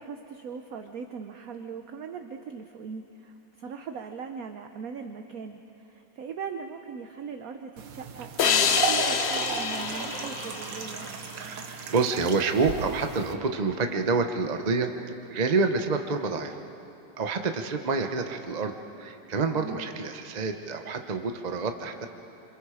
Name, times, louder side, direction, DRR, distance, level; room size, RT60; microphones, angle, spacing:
voice 1, 0.0-11.1 19.5-19.9, right 6 dB, 60° right, 6 dB, 1.1 m, -40 dB
sound 1, 7.8-13.3, right 6 dB, 80° right, 1.8 m, -34 dB
sound 2, 8.4-11.7, left 7 dB, 65° left, 0.6 m, -27 dB
voice 2, 11.4-16.6 17.2-22.1, right 4 dB, 35° right, 5 dB, 0.7 m, -28 dB
27.5 x 26.0 x 5.0 m, 2.8 s
omnidirectional pair, 2.0 m